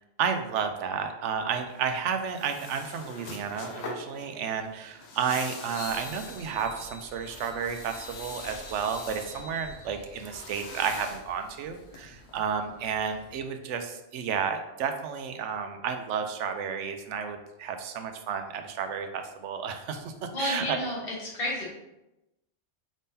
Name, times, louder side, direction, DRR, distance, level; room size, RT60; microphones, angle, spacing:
voice 1, 0.2-20.8, right 7 dB, 75° right, 6 dB, 0.9 m, -32 dB
sound 1, 1.7-12.4, left 3 dB, 65° left, 0.9 m, -44 dB
sound 2, 5.7-13.4, left 2 dB, 90° left, 1.2 m, -48 dB
voice 2, 20.3-21.7, left 1 dB, 45° left, -5 dB, 1.6 m, -31 dB
5.0 x 3.6 x 2.7 m, 0.93 s
omnidirectional pair, 1.3 m